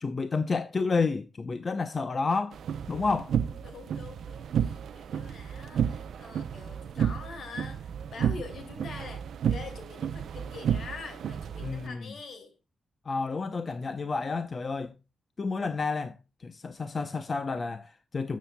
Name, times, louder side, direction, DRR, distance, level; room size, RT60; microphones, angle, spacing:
voice 1, 0.0-2.6 2.9-3.3 11.6-12.1 13.1-14.9 15.4-18.4, left 4 dB, 35° left, 0.6 m, -30 dB
sound 1, 2.5-11.9, right 8 dB, 80° right, 0.5 m, -32 dB
voice 2, 3.6-12.6, left 4 dB, 65° left, 2.4 m, -44 dB
12.5 x 7.5 x 2.2 m
wide cardioid pair, 145°, 0 cm